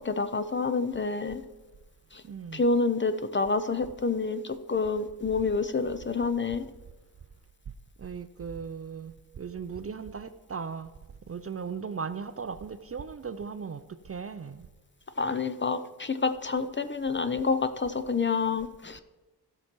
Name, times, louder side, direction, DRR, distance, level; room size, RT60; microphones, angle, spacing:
voice 1, 0.0-1.4 2.1-2.2 2.5-6.6 15.2-19.0, left 4 dB, 30° left, 11 dB, 0.5 m, -28 dB
voice 2, 2.2-2.6 8.0-10.9 11.3-14.7, right 6 dB, 35° right, 12 dB, 0.5 m, -37 dB
15.5 x 5.9 x 4.4 m, 1.2 s
wide cardioid pair, 110°, 42 cm